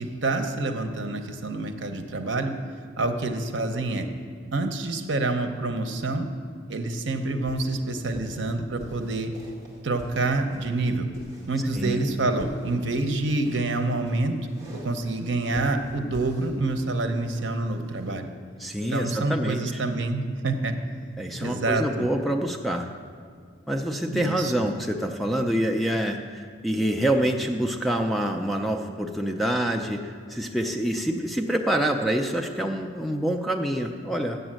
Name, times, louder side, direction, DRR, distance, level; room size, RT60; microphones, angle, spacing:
voice 1, 0.0-2.5 3.0-4.1 4.5-6.3 6.7-9.3 9.8-11.1 11.5-14.4 14.7-18.3 18.9-20.7 21.4-22.1 24.1-24.5, right 2 dB, 65° right, 6 dB, 0.8 m, -27 dB
sound 1, 7.5-18.1, equal, 15° right, 2.0 m, -45 dB
voice 2, 18.6-19.8 21.2-22.9 23.7-34.4, right 1 dB, ahead, 3 dB, 0.4 m, -26 dB
7.9 x 7.0 x 7.6 m, 2.1 s
head